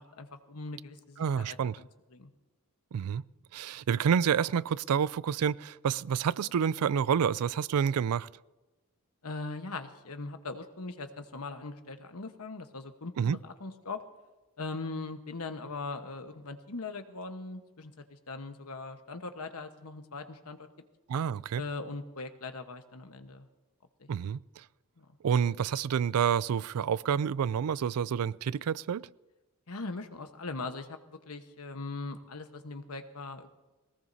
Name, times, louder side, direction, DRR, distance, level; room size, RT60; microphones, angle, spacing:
voice 1, 0.0-2.3 9.2-14.0 14.6-20.7 21.6-23.5 24.0-24.1 25.0-25.2 29.7-33.5, left 3 dB, 90° left, 1.2 m, -40 dB
voice 2, 1.2-1.8 2.9-3.2 3.5-8.3 13.2-13.4 21.1-21.6 24.1-24.4 25.2-29.1, right 7 dB, 90° right, 0.4 m, -28 dB
21.0 x 19.0 x 2.7 m
head